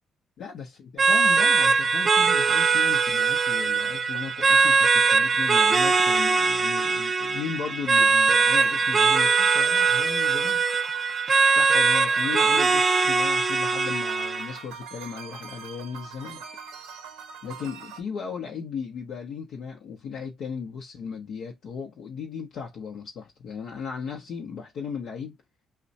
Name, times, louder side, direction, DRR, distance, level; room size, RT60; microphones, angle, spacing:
voice 1, 0.4-0.7 0.9-10.6 11.5-16.4 17.4-25.4, left 6 dB, 70° left, 0.7 m, -36 dB
sound 1, 1.0-14.6, right 4 dB, 40° right, 0.5 m, -21 dB
sound 2, 8.5-18.0, right 6 dB, 90° right, 0.6 m, -43 dB
2.4 x 2.2 x 4.0 m
supercardioid pair, 55°, 0 cm